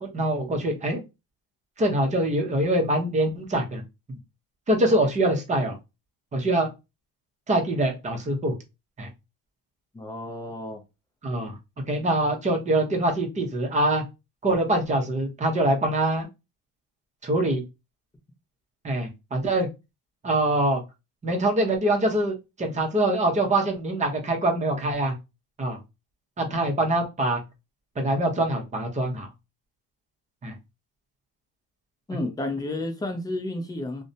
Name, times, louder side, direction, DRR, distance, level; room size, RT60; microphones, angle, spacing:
voice 1, 0.0-1.0 1.8-3.8 4.7-5.8 6.3-6.7 7.5-8.5 9.0-9.1 11.2-11.5 11.9-14.0 14.4-16.3 17.2-17.6 18.8-19.7 20.2-20.8 21.2-25.1 25.6-25.8 26.4-27.4 28.0-29.3 30.4-30.5, right 1 dB, 20° right, 0.7 m, -24 dB
voice 2, 9.9-10.8 32.1-34.0, left 2 dB, 10° left, 0.5 m, -31 dB
2.6 x 2.1 x 2.6 m
cardioid pair, 125°, 34 cm